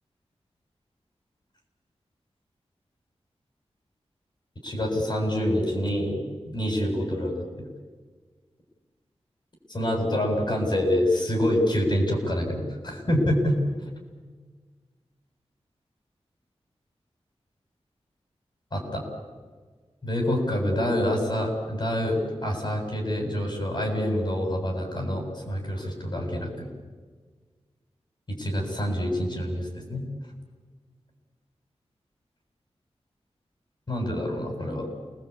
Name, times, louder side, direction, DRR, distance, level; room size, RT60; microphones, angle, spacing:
voice 1, 4.6-6.2 6.5-7.7 9.7-13.6 18.7-19.0 20.0-26.7 28.3-30.0 33.9-34.9, equal, 45° left, 2 dB, 7.7 m, -26 dB
29.0 x 20.5 x 8.5 m, 1.5 s
wide cardioid pair, 100°, 11 cm